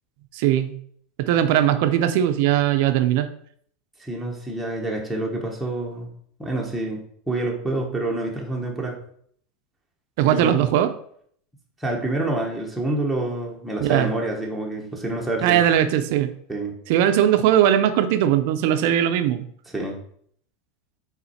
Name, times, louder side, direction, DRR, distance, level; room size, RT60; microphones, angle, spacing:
voice 1, 0.4-0.7 1.3-3.3 10.2-10.9 13.8-14.1 15.4-16.3 16.9-19.4, right 11 dB, 50° right, 9 dB, 0.6 m, -19 dB
voice 2, 4.0-6.1 6.4-9.0 10.2-10.7 11.8-15.6 16.5-16.7 19.7-20.0, right 2 dB, ahead, -3 dB, 0.8 m, -27 dB
5.7 x 4.2 x 4.2 m, 0.63 s
supercardioid pair, 175°, 0 cm